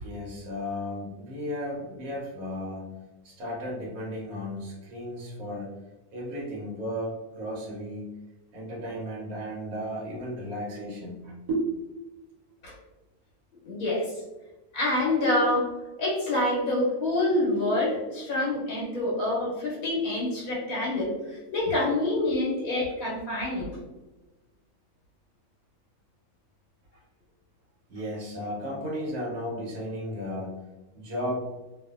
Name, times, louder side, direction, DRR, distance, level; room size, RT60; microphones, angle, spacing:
voice 1, 0.0-2.8 3.2-5.7 6.1-8.1 8.5-12.0 27.9-30.5 30.9-31.5, equal, 80° right, -4 dB, 1.2 m, -34 dB
voice 2, 13.6-14.1 14.7-15.7 16.0-23.7, left 1 dB, 75° left, -5 dB, 1.2 m, -27 dB
2.5 x 2.5 x 2.3 m, 1.1 s
omnidirectional pair, 1.6 m